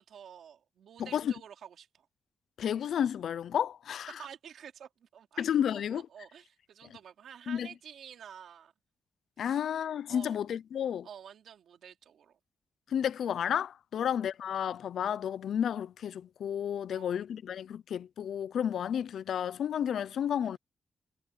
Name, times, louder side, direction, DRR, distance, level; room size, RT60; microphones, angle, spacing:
voice 1, 0.0-2.1 4.1-8.7 9.4-9.6 10.1-10.5 11.0-12.4 13.9-14.1 16.9-17.2, right 8 dB, 90° right, 2.9 m, -50 dB
voice 2, 1.0-1.3 2.6-4.1 5.4-6.0 7.5-7.7 9.4-11.1 12.9-20.6, left 9 dB, 80° left, 0.6 m, -31 dB
wide cardioid pair, 155°, 0 cm